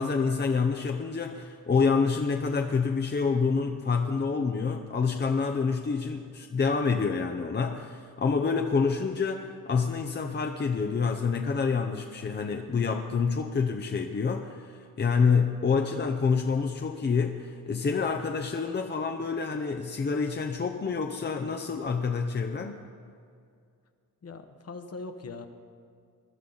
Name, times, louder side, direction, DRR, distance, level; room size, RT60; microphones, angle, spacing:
voice 1, 0.0-22.8, left 5 dB, 30° left, 4 dB, 0.7 m, -27 dB
voice 2, 24.2-25.5, left 3 dB, 50° left, 7 dB, 1.1 m, -41 dB
21.0 x 12.5 x 4.0 m, 2.3 s
wide cardioid pair, 125°, 33 cm